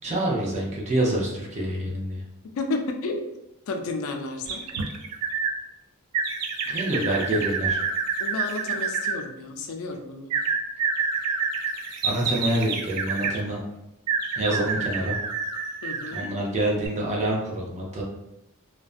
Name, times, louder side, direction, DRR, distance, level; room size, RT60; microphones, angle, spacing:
voice 1, 0.0-2.2 6.7-7.8 12.0-13.6 14.4-15.2 16.1-18.0, right 1 dB, 30° right, -2 dB, 0.5 m, -26 dB
voice 2, 2.6-3.3 3.7-4.6 8.2-10.4 15.8-16.3, left 3 dB, 70° left, 4 dB, 0.4 m, -32 dB
sound 1, 4.5-5.5 6.1-9.2 10.3-13.4 14.1-16.3 16.8-16.9, right 5 dB, 85° right, 0.3 m, -28 dB
2.5 x 2.1 x 2.4 m, 0.87 s
head